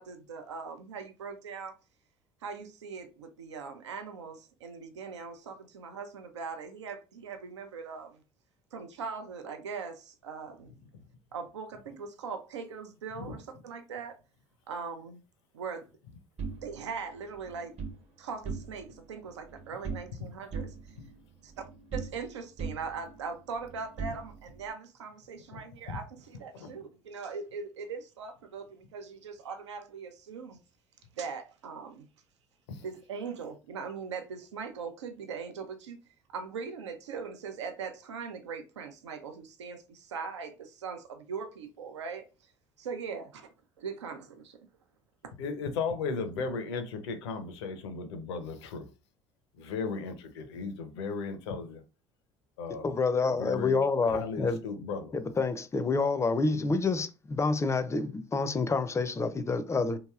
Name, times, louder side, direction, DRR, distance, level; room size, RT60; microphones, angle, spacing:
voice 1, 0.0-1.7 2.4-8.2 8.7-10.7 11.3-14.2 14.7-15.2 15.5-15.9 16.6-17.8 18.2-20.9 21.9-30.6 31.2-32.1 32.8-36.0 36.3-42.3 42.8-43.5 43.8-44.6, right 5 dB, 85° right, 0.5 m, -40 dB
sound 1, 16.4-18.0 18.3-19.0 19.3-20.2 20.5-22.3 22.6-24.7, right 5 dB, 45° right, 1.0 m, -40 dB
voice 2, 45.4-48.9 49.6-51.8 52.6-52.9 53.4-55.2, left 4 dB, 75° left, 0.6 m, -36 dB
voice 3, 52.8-54.6 55.1-60.0, left 4 dB, 20° left, 0.4 m, -28 dB
2.9 x 2.7 x 2.3 m
hypercardioid pair, 60°, 15 cm